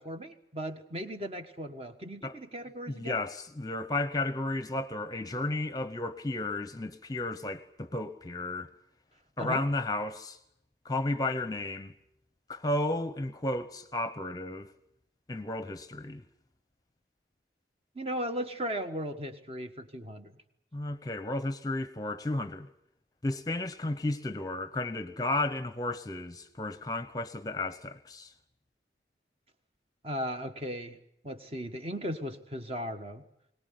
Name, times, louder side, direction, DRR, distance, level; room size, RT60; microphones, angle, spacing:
voice 1, 0.0-3.2 9.4-9.6 17.9-20.3 30.0-31.0 31.2-33.2, equal, 30° right, 1.5 m, -37 dB
voice 2, 2.9-8.7 9.4-10.4 10.8-11.9 12.5-14.7 15.3-16.2 20.7-22.7 23.2-28.3, left 2 dB, 20° left, 0.9 m, -33 dB
22.0 x 19.0 x 9.5 m
head